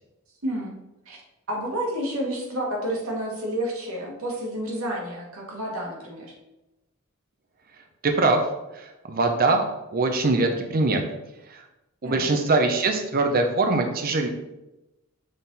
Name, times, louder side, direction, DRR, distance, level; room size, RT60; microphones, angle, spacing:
voice 1, 0.4-0.7 1.0-1.2 1.5-6.3 12.0-12.3, right 1 dB, 85° right, -1 dB, 1.6 m, -30 dB
voice 2, 8.0-8.4 9.1-9.6 9.9-11.0 12.0-14.3, right 3 dB, 45° right, 4 dB, 0.7 m, -22 dB
6.3 x 3.8 x 4.0 m, 0.95 s
head